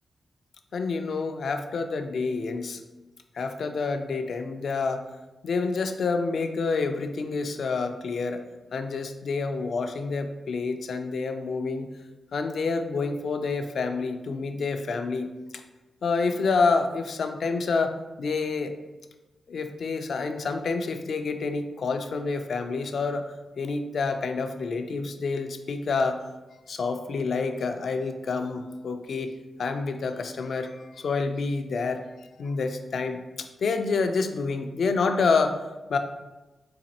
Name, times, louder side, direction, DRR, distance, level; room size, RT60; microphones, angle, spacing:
voice 1, 0.7-2.8 3.3-5.0 5.4-8.4 8.7-11.9 12.3-15.3 16.0-18.7 19.5-23.3 23.6-26.2 26.7-32.0 32.4-35.6 35.9-36.0, left 4 dB, 70° left, 7 dB, 0.3 m, -28 dB
4.0 x 2.5 x 2.8 m, 1.1 s
cardioid pair, 65°, 0 cm